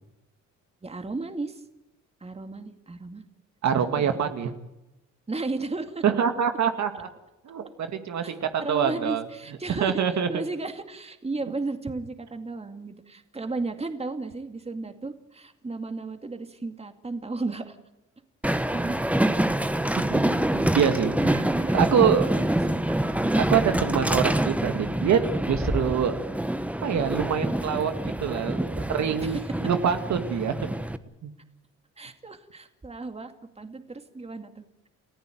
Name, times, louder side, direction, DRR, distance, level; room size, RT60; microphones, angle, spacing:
voice 1, 0.8-1.6 2.2-3.3 3.8-4.2 5.3-6.0 8.2-17.8 18.5-19.0 21.0-23.3 29.2-29.6 32.0-34.9, right 3 dB, 20° right, 7 dB, 2.3 m, -35 dB
voice 2, 3.6-4.5 6.0-7.1 7.5-9.2 9.8-10.3 20.0-21.4 21.7-22.3 23.4-26.2 26.8-30.6 31.2-31.3, right 7 dB, 65° right, 7 dB, 2.1 m, -25 dB
Train, 18.4-31.0, right 1 dB, 5° right, 1.3 m, -26 dB
30.0 x 15.0 x 9.2 m, 0.96 s
cardioid pair, 90°, 30 cm